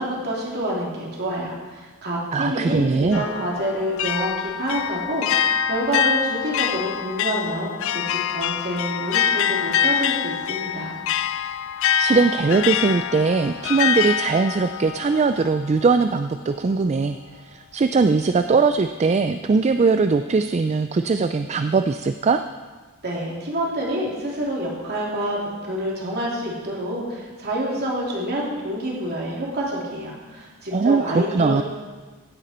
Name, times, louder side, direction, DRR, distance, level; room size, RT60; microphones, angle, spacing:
voice 1, 0.0-10.9 23.0-25.4 25.6-31.6, right 1 dB, 50° right, -4 dB, 3.0 m, -27 dB
voice 2, 2.3-3.3 12.0-17.2 17.5-22.4 30.7-31.6, right 4 dB, 30° right, 9 dB, 0.3 m, -20 dB
sound 1, 3.1-16.1, left 8 dB, 60° left, 0.3 m, -25 dB
16.0 x 9.1 x 4.3 m, 1.4 s
head